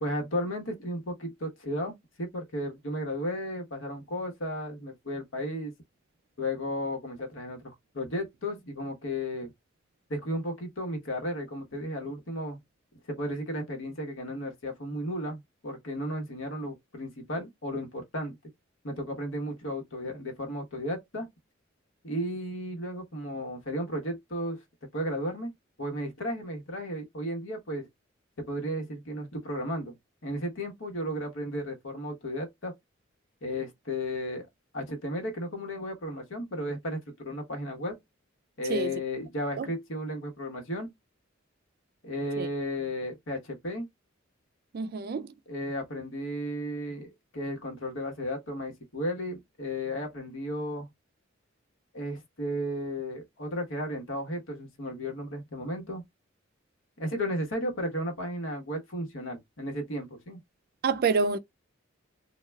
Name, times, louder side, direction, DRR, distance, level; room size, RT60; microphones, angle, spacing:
voice 1, 0.0-5.7 6.4-9.5 10.1-12.6 13.1-18.3 18.8-21.3 22.0-24.6 24.9-25.5 25.8-27.9 28.4-29.9 30.2-32.7 33.4-34.5 34.7-38.0 38.6-40.9 42.0-43.9 45.5-50.9 51.9-56.0 57.0-60.4, equal, 75° left, 1.0 m, -34 dB
voice 2, 38.7-39.0 39.6-39.7 42.4-42.5 44.7-45.3 60.8-61.4, right 4 dB, 50° right, 0.4 m, -27 dB
3.2 x 2.3 x 2.2 m
head